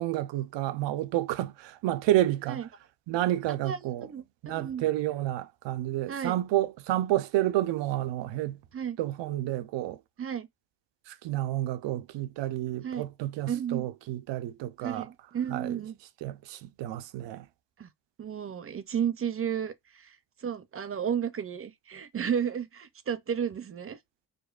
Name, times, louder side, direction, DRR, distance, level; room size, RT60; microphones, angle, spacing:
voice 1, 0.0-2.7 3.1-4.1 4.4-8.6 9.0-10.0 11.1-15.1 15.5-15.8 16.2-17.5, right 14 dB, 85° right, 0.5 m, -30 dB
voice 2, 3.6-4.8 6.1-6.4 8.7-9.0 10.2-10.5 12.8-13.1 13.5-13.9 14.8-16.0 17.8-17.9 18.2-20.1 20.4-24.0, right 8 dB, 35° right, 0.5 m, -33 dB
5.0 x 2.1 x 2.4 m
cardioid pair, 95°, 42 cm